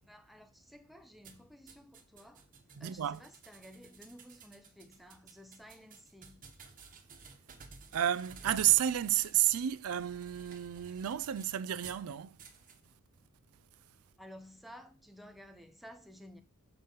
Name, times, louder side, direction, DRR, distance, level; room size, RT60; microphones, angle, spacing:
voice 1, 0.0-2.5 2.8-6.4 14.2-16.4, equal, ahead, 0.6 m, -54 dB
sound 1, 1.2-12.0 12.4-12.8, right 4 dB, 40° right, 1.1 m, -55 dB
voice 2, 2.8-3.2 7.9-12.4, right 12 dB, 90° right, 0.4 m, -31 dB
6.9 x 5.4 x 3.9 m
head